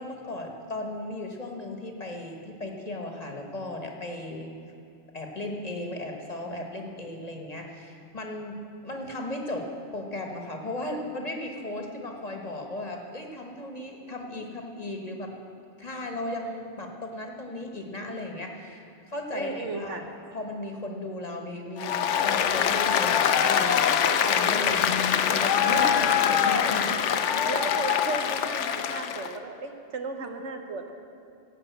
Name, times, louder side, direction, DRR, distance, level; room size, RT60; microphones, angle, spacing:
voice 1, 0.0-4.5 5.1-15.3 15.8-20.0 20.3-26.9, left 1 dB, 35° left, 2 dB, 1.2 m, -36 dB
voice 2, 19.3-20.0 25.6-26.3 27.5-30.9, right 4 dB, 75° right, 5 dB, 1.3 m, -34 dB
Applause, 21.8-29.3, left 8 dB, 80° left, 0.9 m, -24 dB
16.5 x 5.6 x 8.0 m, 2.6 s
omnidirectional pair, 1.2 m